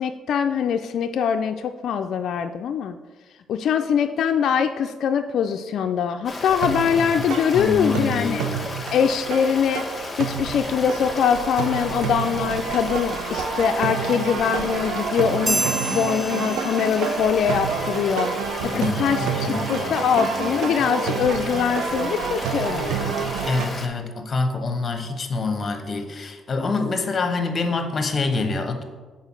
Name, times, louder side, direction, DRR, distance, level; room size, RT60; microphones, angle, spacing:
voice 1, 0.0-3.0 3.5-8.4 8.9-9.8 10.2-23.1, left 7 dB, 70° left, 6 dB, 0.3 m, -23 dB
Stream, 6.3-23.9, left 2 dB, 25° left, 1.2 m, -34 dB
sound 1, 6.5-23.7, right 7 dB, 85° right, 0.5 m, -29 dB
voice 2, 7.2-8.6 18.6-19.9 23.5-28.8, left 3 dB, 40° left, 6 dB, 1.0 m, -26 dB
sound 2, 15.5-17.3, right 2 dB, 10° right, 0.4 m, -28 dB
5.6 x 4.3 x 5.9 m, 1.3 s
cardioid pair, 90°, 0 cm